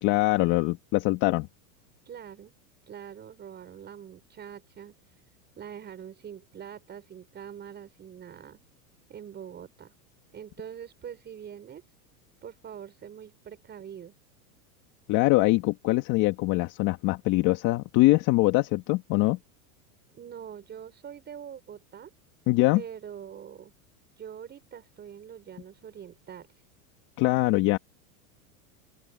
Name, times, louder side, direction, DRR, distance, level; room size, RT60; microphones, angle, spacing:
voice 1, 0.0-1.5 15.1-19.4 22.5-22.8 27.2-27.8, left 20 dB, 45° left, 2.2 m, -23 dB
voice 2, 2.1-2.5 2.9-5.1 5.6-8.6 9.1-9.9 10.3-11.8 12.4-14.1 20.1-22.1 22.7-23.7 24.2-26.6, right 8 dB, 25° right, 5.8 m, -44 dB
open air
supercardioid pair, 150°, 44 cm